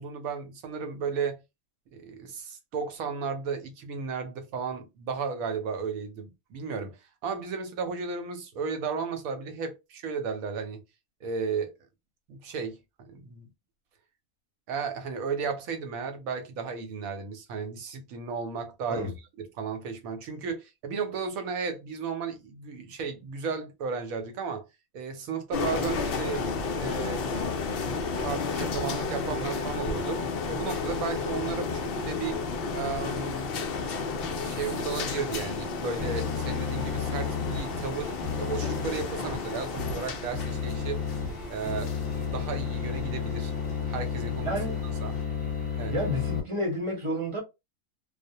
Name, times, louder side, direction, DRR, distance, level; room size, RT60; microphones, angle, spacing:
voice 1, 0.0-1.4 1.9-10.8 11.2-11.7 12.3-13.5 14.7-24.7 24.9-26.4 26.8-32.4 32.7-33.5 34.4-41.0 41.5-43.5 43.9-44.5 45.0-45.2 45.8-45.9, right 5 dB, 80° right, 1.1 m, -34 dB
sound 1, 25.5-45.2, left 4 dB, 70° left, 0.5 m, -33 dB
sound 2, 36.0-46.4, left 7 dB, 5° left, 1.0 m, -33 dB
voice 2, 44.3-44.8 45.9-47.4, equal, 30° right, 0.7 m, -31 dB
2.4 x 2.0 x 2.7 m
omnidirectional pair, 1.5 m